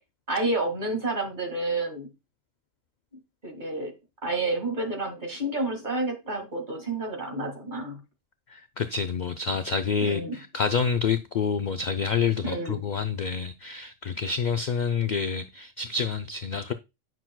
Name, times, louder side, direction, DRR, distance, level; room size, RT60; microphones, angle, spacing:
voice 1, 0.3-2.1 3.4-3.9 4.2-8.0 10.0-10.4 12.4-12.9, right 2 dB, 40° right, 2.0 m, -30 dB
voice 2, 8.5-16.7, left 5 dB, 70° left, 0.4 m, -28 dB
9.2 x 6.0 x 2.2 m
omnidirectional pair, 1.3 m